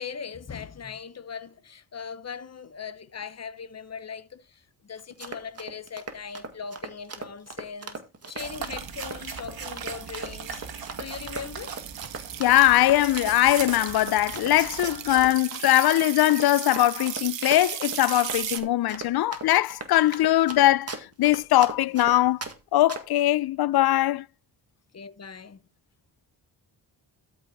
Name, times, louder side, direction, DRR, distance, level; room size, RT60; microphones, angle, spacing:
voice 1, 0.0-8.0 8.3-10.6 11.0-11.8 24.9-25.6, left 6 dB, 35° left, 1.0 m, -39 dB
Run, 5.0-22.6 22.9-23.2, right 3 dB, 35° right, 2.0 m, -38 dB
sound 1, 8.3-18.6, right 11 dB, 85° right, 1.1 m, -37 dB
sound 2, 8.4-15.3, right 6 dB, 55° right, 2.2 m, -39 dB
voice 2, 12.4-22.4 22.7-24.2, left 14 dB, 60° left, 0.5 m, -21 dB
13.0 x 5.5 x 4.1 m
cardioid pair, 90°, 43 cm